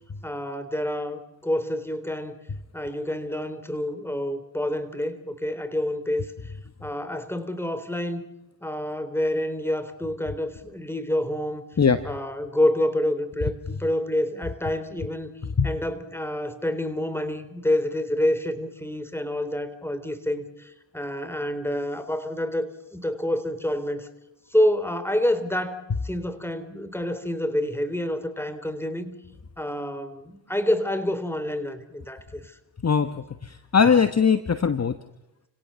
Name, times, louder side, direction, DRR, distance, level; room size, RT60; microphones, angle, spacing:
voice 1, 0.2-2.4 2.7-6.5 6.8-8.2 8.6-11.7 12.0-13.5 13.8-15.3 15.6-24.1 24.5-29.2 29.6-32.6, left 1 dB, 5° left, 11 dB, 3.6 m, -28 dB
voice 2, 33.4-34.9, left 6 dB, 35° left, 10 dB, 1.3 m, -20 dB
30.0 x 17.5 x 7.0 m, 0.89 s
cardioid pair, 55°, 45 cm